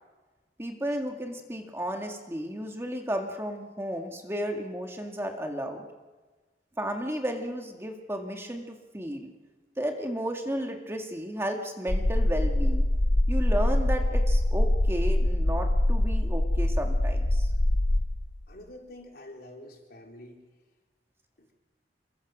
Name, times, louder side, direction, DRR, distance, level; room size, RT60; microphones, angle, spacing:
voice 1, 0.6-5.9 6.8-9.3 9.8-12.9 13.3-17.5, equal, 15° right, 3 dB, 1.9 m, -33 dB
sound 1, 11.9-18.4, left 1 dB, 80° left, 1.2 m, -24 dB
voice 2, 18.5-20.4 21.4-21.5, left 1 dB, 55° left, 1 dB, 4.2 m, -47 dB
27.0 x 23.0 x 6.2 m, 1.3 s
head